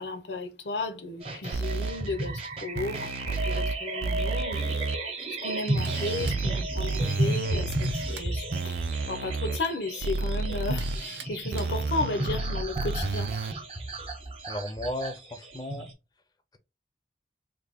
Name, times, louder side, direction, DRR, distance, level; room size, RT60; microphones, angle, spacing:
voice 1, 0.0-5.1 5.4-8.7 9.1-13.3, left 2 dB, 80° left, 0.6 m, -34 dB
sound 1, 1.2-15.9, right 1 dB, 35° right, 0.8 m, -33 dB
sound 2, 1.5-1.9 2.8-3.7 4.0-5.0 5.8-7.9 8.5-9.6 10.0-11.0 11.5-13.5, right 3 dB, 60° right, 0.3 m, -31 dB
Camera, 5.2-5.3 5.7-6.5 7.3-7.4 7.7-8.3 9.4-9.7 10.1-10.2 10.8-11.2 11.6-11.7, right 7 dB, 80° right, 0.7 m, -43 dB
voice 2, 14.5-15.9, left 1 dB, 20° left, 0.4 m, -34 dB
3.3 x 2.2 x 3.4 m
head